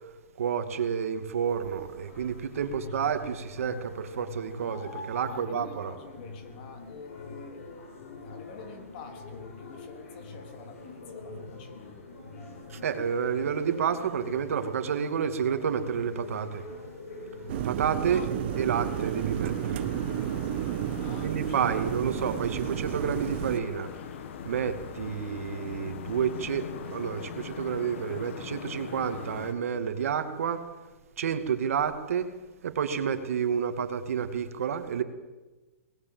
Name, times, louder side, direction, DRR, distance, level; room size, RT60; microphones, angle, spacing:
voice 1, 0.4-5.9 12.7-16.6 17.6-18.2 18.6-19.8 21.2-23.9 24.4-30.7 31.2-32.3 32.6-35.0, right 7 dB, 80° right, 8 dB, 2.4 m, -30 dB
sound 1, 1.4-19.2, left 3 dB, 85° left, 7.9 m, -44 dB
voice 2, 2.7-3.1 5.3-12.1 18.1-18.3 21.0-21.9, left 5 dB, 40° left, 5 dB, 3.6 m, -47 dB
sound 2, 17.5-23.6, right 12 dB, 45° right, 1.1 m, -32 dB
sound 3, 18.5-29.5, left 8 dB, 60° left, 2.1 m, -41 dB
23.0 x 19.5 x 7.9 m, 1.2 s
hypercardioid pair, 160°, 8 cm